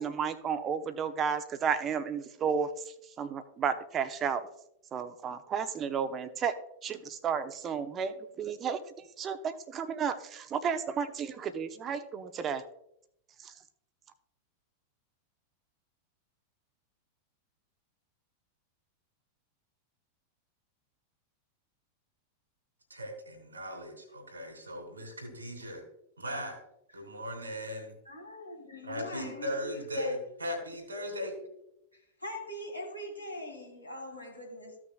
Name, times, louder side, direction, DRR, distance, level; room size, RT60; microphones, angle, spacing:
voice 1, 0.0-4.5 4.9-6.5 6.8-12.6 13.4-13.6, right 7 dB, 25° right, 0.8 m, -33 dB
voice 2, 22.9-25.8 26.2-26.6 26.9-27.9 28.8-31.3, equal, 80° right, 2.9 m, -38 dB
voice 3, 28.0-30.2 31.9-34.8, left 1 dB, 85° left, 2.2 m, -42 dB
15.0 x 6.1 x 2.3 m
figure-of-eight pair, 90°, 0 cm